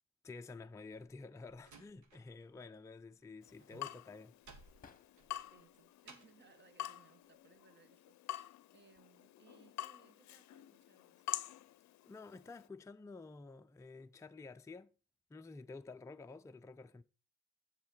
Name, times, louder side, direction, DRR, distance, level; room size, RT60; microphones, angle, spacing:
voice 1, 0.2-4.4 12.1-14.9 15.3-17.0, left 3 dB, 10° left, 0.4 m, -51 dB
Slam, 1.1-2.7 3.0-6.5, right 4 dB, 70° right, 1.9 m, -61 dB
sound 1, 3.1-5.6 6.0-6.8 7.8-8.1 8.4-9.2, left 6 dB, 25° left, 1.0 m, -68 dB
Water tap faucet / Drip, 3.4-12.7, left 13 dB, 65° left, 0.6 m, -47 dB
voice 2, 5.5-11.2, right 5 dB, 35° right, 1.2 m, -66 dB
7.8 x 7.3 x 5.0 m
cardioid pair, 90°, 30 cm